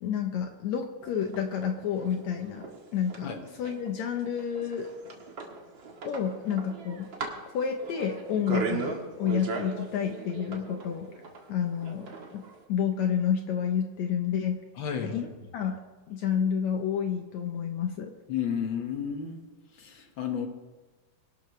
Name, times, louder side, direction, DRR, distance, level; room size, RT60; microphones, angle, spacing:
voice 1, 0.0-3.3 3.6-4.9 6.0-7.1 7.5-11.1 11.5-12.4 12.7-14.6 15.0-15.3 15.5-15.8 16.1-18.1, left 8 dB, 70° left, 4 dB, 2.1 m, -30 dB
sound 1, 1.0-12.6, right 4 dB, 45° right, 2.0 m, -38 dB
voice 2, 14.8-15.3 18.3-19.4 19.7-20.5, left 7 dB, 50° left, 4 dB, 1.7 m, -32 dB
22.5 x 12.0 x 3.3 m, 1.2 s
omnidirectional pair, 3.5 m